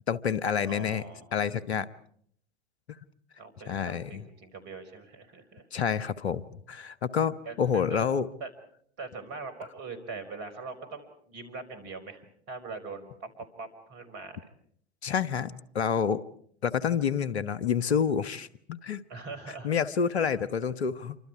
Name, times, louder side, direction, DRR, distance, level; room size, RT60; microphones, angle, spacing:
voice 1, 0.1-1.0 1.3-1.9 3.7-4.2 5.7-6.4 6.7-8.3 15.0-16.2 16.6-19.0 19.6-21.2, left 7 dB, 75° left, 16 dB, 1.1 m, -28 dB
voice 2, 0.7-1.3 3.4-5.7 7.5-8.0 8.4-8.5 9.0-14.4 19.1-19.7 20.1-20.2, right 4 dB, 50° right, 10 dB, 5.4 m, -42 dB
28.0 x 25.5 x 4.8 m, 0.64 s
figure-of-eight pair, 85°, 32 cm